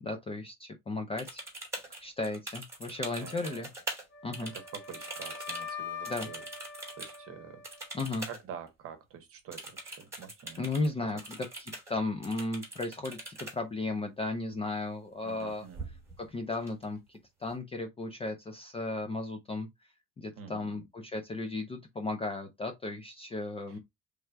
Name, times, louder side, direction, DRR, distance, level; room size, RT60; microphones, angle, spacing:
voice 1, 0.0-1.4 2.0-3.7 4.2-4.5 6.1-6.3 7.9-8.3 10.6-15.7 16.2-17.0 17.4-19.7 20.2-23.8, left 2 dB, 20° left, 0.4 m, -35 dB
sound 1, 1.2-4.0 4.3-7.2 7.6-8.4 8.7-8.8 9.5-10.9 11.2-11.9 12.2-13.5 15.2-15.4 15.7-16.2 16.5-17.2, right 2 dB, 10° right, 1.3 m, -42 dB
voice 2, 3.2-3.7 4.4-6.4 7.0-7.6 8.3-10.7 11.0-11.2 15.2-15.8 20.4-20.9 23.7-23.8, right 7 dB, 45° right, 0.9 m, -47 dB
Wind instrument woodwind instrument, 4.1-8.2, left 6 dB, 35° left, 0.9 m, -44 dB
3.3 x 2.4 x 4.3 m
cardioid pair, 165°, 33 cm